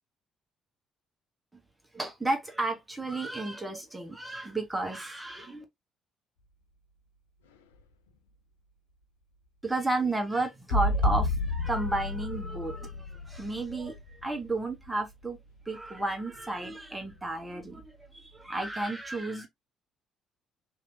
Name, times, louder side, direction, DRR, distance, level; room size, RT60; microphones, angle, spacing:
voice 1, 1.9-5.6 9.6-15.4 15.6-19.5, right 2 dB, 15° right, 1.2 m, -32 dB
sound 1, 10.7-15.3 17.1-17.2, left 1 dB, 80° left, 0.3 m, -31 dB
2.9 x 2.7 x 2.8 m
hypercardioid pair, 50°, 0 cm